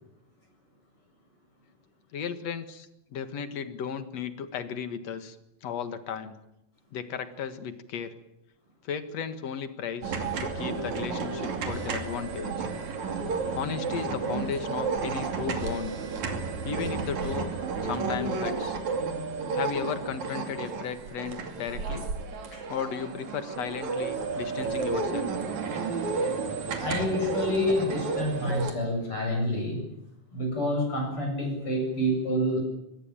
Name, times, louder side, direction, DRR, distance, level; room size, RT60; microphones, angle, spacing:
voice 1, 2.1-5.4 5.6-6.3 6.9-8.2 8.8-12.5 13.5-15.9 16.6-17.5 17.8-18.8 19.5-22.1 22.7-25.3, left 7 dB, 60° left, 10 dB, 2.7 m, -35 dB
sound 1, 10.0-28.7, right 4 dB, 65° right, 3.9 m, -32 dB
voice 2, 26.8-29.8 30.3-32.6, left 1 dB, 40° left, 2 dB, 8.5 m, -28 dB
23.5 x 20.0 x 9.1 m, 0.85 s
omnidirectional pair, 3.7 m